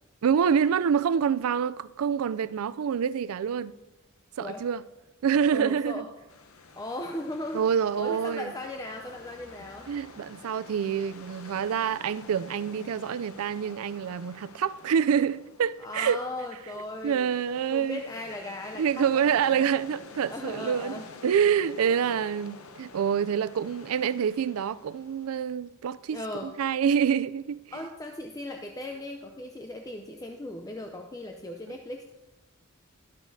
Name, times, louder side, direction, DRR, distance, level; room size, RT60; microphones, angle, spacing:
voice 1, 0.2-3.7 4.4-4.8 5.2-6.0 7.5-8.5 9.9-16.2 17.0-18.0 18.8-27.6, right 7 dB, 85° right, 0.4 m, -26 dB
voice 2, 5.5-6.1 6.8-9.9 15.8-17.4 17.7-19.7 20.2-21.1 21.8-22.3 26.1-26.5 27.7-32.0, left 1 dB, 15° left, 0.5 m, -38 dB
sound 1, 6.1-12.2, left 1 dB, 35° left, 2.2 m, -59 dB
sound 2, 6.3-25.3, left 4 dB, 85° left, 0.8 m, -49 dB
12.5 x 12.0 x 2.7 m
head